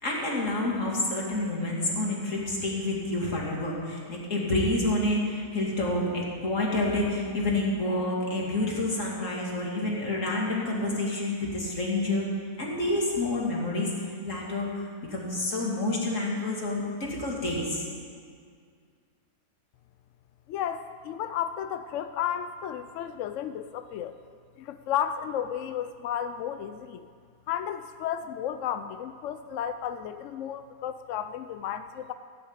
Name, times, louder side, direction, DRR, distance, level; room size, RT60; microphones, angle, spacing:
voice 1, 0.0-12.3 12.6-17.8, left 2 dB, 50° left, -3 dB, 2.8 m, -28 dB
voice 2, 20.5-24.2 24.6-27.1 27.5-32.1, left 9 dB, 70° left, 10 dB, 0.7 m, -33 dB
16.5 x 6.6 x 8.9 m, 2.1 s
omnidirectional pair, 1.7 m